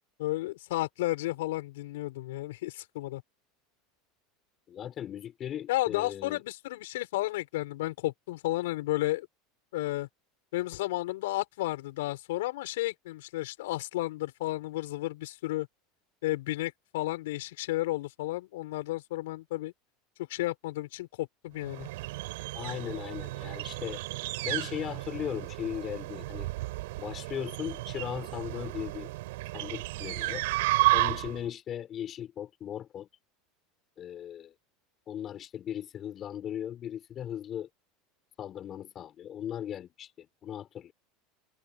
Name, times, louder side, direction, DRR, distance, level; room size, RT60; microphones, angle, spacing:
voice 1, 0.2-3.2 5.7-9.3 9.7-10.1 10.5-15.7 16.2-19.7 20.2-21.9, left 17 dB, 85° left, 6.9 m, -32 dB
voice 2, 4.7-6.4 22.5-24.0 24.4-26.5 27.0-29.1 29.5-30.5 30.9-33.1 34.0-34.5 35.1-37.7 38.4-40.9, left 10 dB, 35° left, 4.1 m, -38 dB
sound 1, 21.6-31.5, right 20 dB, 80° right, 5.9 m, -32 dB
open air
supercardioid pair, 135°, 0 cm